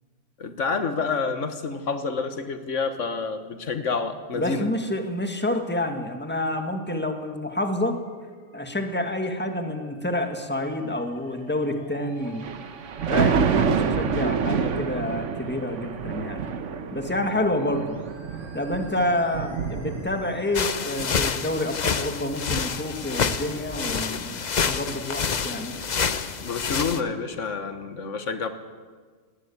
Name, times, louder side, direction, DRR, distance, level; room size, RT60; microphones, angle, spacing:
voice 1, 0.4-4.7 26.4-28.5, left 4 dB, 90° left, 9 dB, 1.7 m, -28 dB
voice 2, 4.3-8.0 8.5-12.5 13.1-16.4 16.9-18.0 18.5-25.8, left 1 dB, 10° left, 5 dB, 1.8 m, -28 dB
Musical instrument, 7.7-25.7, right 1 dB, 20° right, 4.4 m, -51 dB
Thunder, 12.3-20.6 21.0-21.1, right 6 dB, 80° right, 1.4 m, -27 dB
sound 1, 20.5-27.0, left 6 dB, 40° left, 0.8 m, -28 dB
19.5 x 18.5 x 8.7 m, 1.5 s
omnidirectional pair, 1.2 m